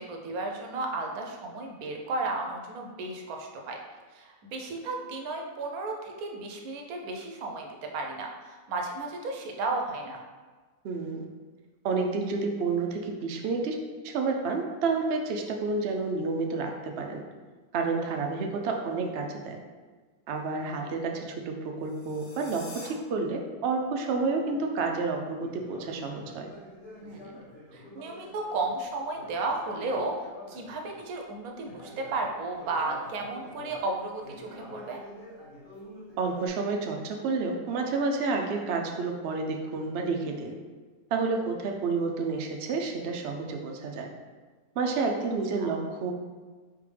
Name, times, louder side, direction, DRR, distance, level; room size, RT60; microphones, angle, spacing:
voice 1, 0.0-3.8 4.1-10.2 27.0-27.4 27.7-30.1 30.5-35.0 45.6-45.7, right 3 dB, 80° right, 2 dB, 1.1 m, -34 dB
voice 2, 10.8-11.3 11.8-13.8 14.0-17.2 17.7-19.6 20.3-26.5 36.2-40.6 41.1-44.1 44.8-46.1, right 4 dB, 65° right, 3 dB, 0.6 m, -30 dB
sound 1, 21.8-22.9, left 2 dB, 90° left, 1.5 m, -47 dB
Conversation, 25.4-31.1 31.6-36.5, left 1 dB, 20° left, 1.0 m, -48 dB
4.0 x 3.5 x 3.2 m, 1.4 s
omnidirectional pair, 1.5 m